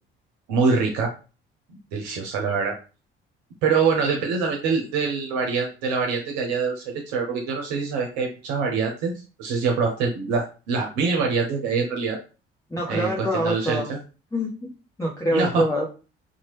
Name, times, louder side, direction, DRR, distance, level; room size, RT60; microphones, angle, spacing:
voice 1, 0.5-1.1 1.9-2.7 3.6-9.1 9.4-12.2 12.9-14.0 15.3-15.6, right 5 dB, 70° right, 1 dB, 0.7 m, -24 dB
voice 2, 12.7-13.9 14.3-14.7 15.0-15.9, equal, 10° left, -3 dB, 0.9 m, -25 dB
2.8 x 2.2 x 3.1 m, 0.34 s
hypercardioid pair, 55°, 29 cm